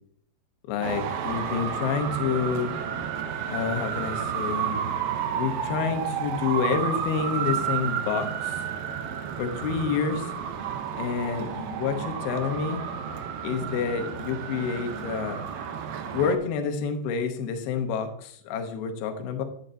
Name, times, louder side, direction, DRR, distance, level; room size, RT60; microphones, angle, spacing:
voice 1, 0.7-2.7 3.5-4.8 5.3-8.6 9.4-10.3 11.0-12.8 13.4-15.4 16.1-19.4, left 6 dB, 70° left, 6 dB, 2.6 m, -28 dB
Traffic noise roadway noise, 0.8-16.4, right 8 dB, 80° right, 2.0 m, -31 dB
11.0 x 7.5 x 2.7 m, 0.67 s
omnidirectional pair, 5.1 m